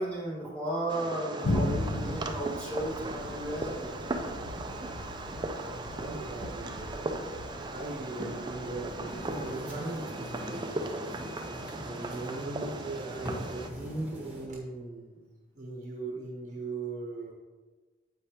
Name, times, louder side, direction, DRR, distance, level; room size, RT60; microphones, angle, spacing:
voice 1, 0.0-3.9, right 1 dB, 5° left, -6 dB, 1.6 m, -34 dB
Fireworks, 0.9-13.7, right 2 dB, 25° right, 0.4 m, -38 dB
Thunder, 1.4-10.9, left 1 dB, 65° left, 0.7 m, -37 dB
voice 2, 5.9-7.2 7.7-10.1 10.4-11.1 11.8-15.2 15.6-17.3, right 2 dB, 40° right, -1 dB, 0.8 m, -39 dB
sound 1, 9.1-14.5, equal, 10° right, 1.2 m, -42 dB
7.8 x 4.9 x 2.9 m, 1.3 s
head